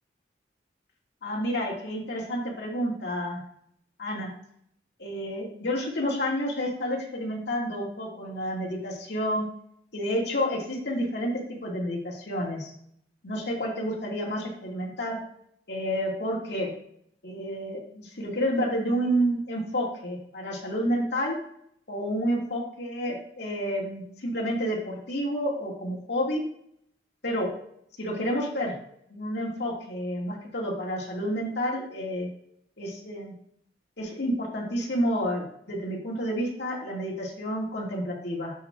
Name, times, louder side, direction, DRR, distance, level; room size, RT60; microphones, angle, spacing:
voice 1, 1.2-3.4 4.0-4.3 5.0-9.5 9.9-12.7 13.2-15.2 15.7-16.7 17.2-21.4 21.9-26.4 27.2-27.5 28.0-28.7 29.1-32.3 32.8-33.3 34.0-38.5, equal, 65° left, -3 dB, 2.1 m, -30 dB
10.5 x 4.3 x 2.4 m, 0.70 s
head